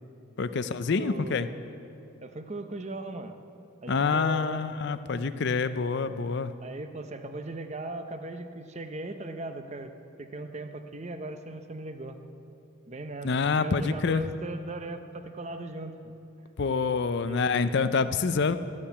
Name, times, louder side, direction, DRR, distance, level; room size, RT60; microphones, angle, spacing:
voice 1, 0.4-1.5 3.9-6.5 13.2-14.3 16.6-18.6, left 4 dB, 50° left, 12 dB, 0.4 m, -27 dB
voice 2, 1.0-1.5 2.2-3.3 3.8-4.6 6.6-9.9 10.2-12.2 12.9-16.1 17.2-17.8, right 2 dB, 30° right, 8 dB, 0.6 m, -38 dB
12.0 x 8.6 x 8.1 m, 2.7 s
head